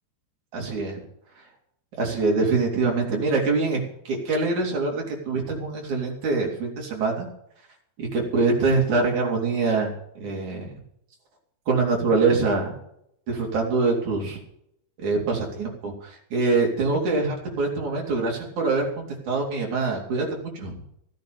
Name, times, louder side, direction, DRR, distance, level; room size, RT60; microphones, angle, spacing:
voice 1, 0.5-1.0 2.0-7.3 8.0-10.7 11.7-12.8 13.3-14.4 15.0-18.9 19.3-20.8, right 3 dB, 45° right, 0 dB, 4.5 m, -24 dB
16.0 x 9.5 x 6.8 m, 0.72 s
omnidirectional pair, 5.1 m